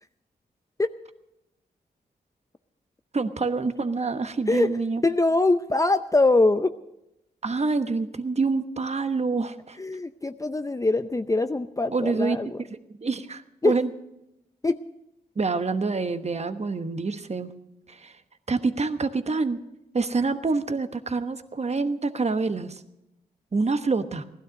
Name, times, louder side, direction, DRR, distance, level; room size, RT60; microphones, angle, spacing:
voice 1, 3.1-5.0 7.4-9.8 11.9-12.4 13.0-13.9 15.4-17.5 17.9-18.1 18.5-19.6 19.9-22.8 23.5-24.2, right 4 dB, 40° right, 10 dB, 1.1 m, -26 dB
voice 2, 5.0-6.7 9.8-12.6 13.6-13.8 14.6-14.8, left 2 dB, 20° left, 10 dB, 0.6 m, -23 dB
16.0 x 12.0 x 6.5 m, 0.89 s
supercardioid pair, 45°, 17 cm